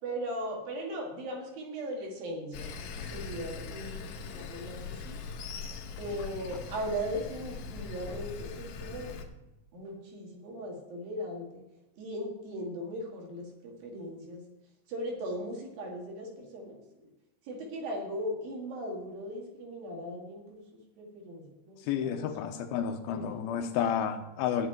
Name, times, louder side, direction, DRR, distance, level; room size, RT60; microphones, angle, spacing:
voice 1, 0.0-5.2 6.0-9.2 9.7-11.6 12.0-14.4 14.9-17.1 17.4-22.3 23.1-23.5, equal, 70° right, 0 dB, 3.8 m, -38 dB
Sawing, 2.5-9.3, left 5 dB, 70° left, 2.4 m, -41 dB
voice 2, 21.8-24.7, left 8 dB, 90° left, 6 dB, 2.6 m, -31 dB
8.9 x 7.7 x 9.2 m, 0.96 s
omnidirectional pair, 4.3 m